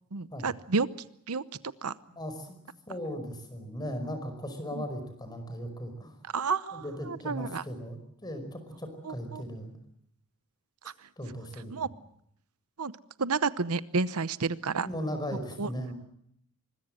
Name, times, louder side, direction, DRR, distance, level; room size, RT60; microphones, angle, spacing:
voice 1, 0.1-0.9 1.3-1.4 1.8-1.9 4.7-4.8 6.3-7.6 9.0-9.4 10.8-11.1 11.7-11.9 12.8-12.9 13.2-14.9 15.6-15.7, right 4 dB, 85° right, 16 dB, 0.9 m, -30 dB
voice 2, 2.1-2.6 2.9-6.1 6.7-9.8 11.2-11.9 14.8-15.9, equal, 20° left, 8 dB, 5.3 m, -37 dB
24.5 x 21.5 x 7.7 m, 0.73 s
head